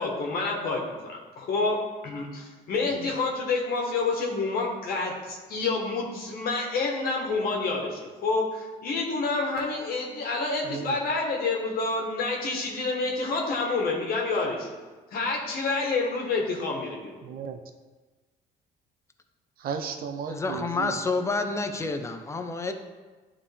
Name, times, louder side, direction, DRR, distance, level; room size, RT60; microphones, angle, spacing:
voice 1, 0.0-1.8 2.0-14.7 15.1-17.2, left 3 dB, 60° left, -1 dB, 1.3 m, -28 dB
voice 2, 10.6-11.0 17.2-17.6 19.6-21.0, right 6 dB, 60° right, 6 dB, 0.7 m, -35 dB
voice 3, 20.3-22.7, left 3 dB, 15° left, 6 dB, 0.6 m, -29 dB
10.5 x 3.6 x 3.4 m, 1.3 s
cardioid pair, 110°, 17 cm